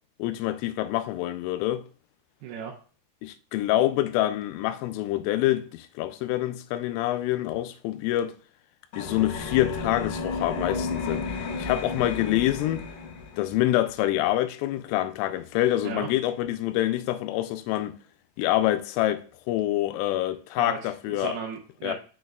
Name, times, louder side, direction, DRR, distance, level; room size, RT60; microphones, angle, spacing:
voice 1, 0.2-1.8 3.2-8.3 9.0-12.8 13.4-17.9 18.4-21.4 21.8-21.9, left 14 dB, 90° left, 3.2 m, -26 dB
voice 2, 2.4-2.7 15.8-16.1 20.6-21.9, right 7 dB, 85° right, 2.3 m, -36 dB
sound 1, 8.9-13.6, left 4 dB, 70° left, 2.7 m, -33 dB
6.4 x 6.4 x 2.3 m
omnidirectional pair, 5.6 m